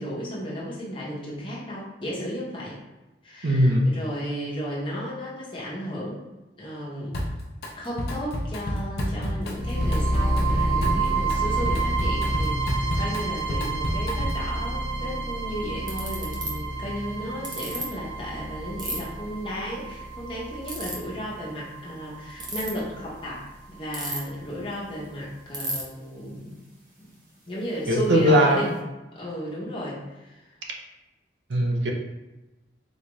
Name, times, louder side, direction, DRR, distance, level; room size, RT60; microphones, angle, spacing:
voice 1, 0.0-2.8 3.2-6.2 6.6-7.2 7.8-26.6 27.0-27.2 27.5-28.7 29.1-30.5, equal, 25° left, -6 dB, 0.9 m, -34 dB
voice 2, 3.4-3.9 27.9-28.6 31.5-31.9, equal, 75° right, 0 dB, 0.6 m, -19 dB
Drum kit, 7.1-7.7 8.0-14.5, left 1 dB, 60° left, 0.5 m, -30 dB
sound 1, 9.5-23.5, right 2 dB, 45° right, 1.2 m, -29 dB
Ratchet pawl, 15.9-16.5 17.4-17.8 18.8-19.0 20.6-20.9 22.3-22.7 23.9-24.4 24.7-24.8 25.0-25.1 25.5-25.8, right 2 dB, 25° right, 0.6 m, -31 dB
4.1 x 2.4 x 3.1 m, 1.1 s
head